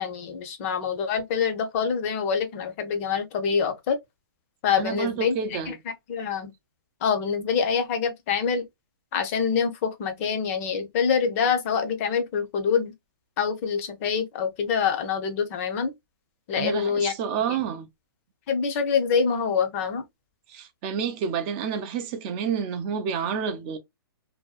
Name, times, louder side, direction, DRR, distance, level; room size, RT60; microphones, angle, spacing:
voice 1, 0.0-4.0 4.6-5.3 5.7-5.8 6.1-6.5 7.0-8.7 9.1-12.9 13.4-15.9 16.5-17.1 18.5-20.0, left 6 dB, 35° left, 0.6 m, -25 dB
voice 2, 4.8-5.8 16.6-17.9 20.5-23.8, right 7 dB, 30° right, 0.4 m, -29 dB
2.6 x 2.2 x 2.4 m
hypercardioid pair, 140°, 12 cm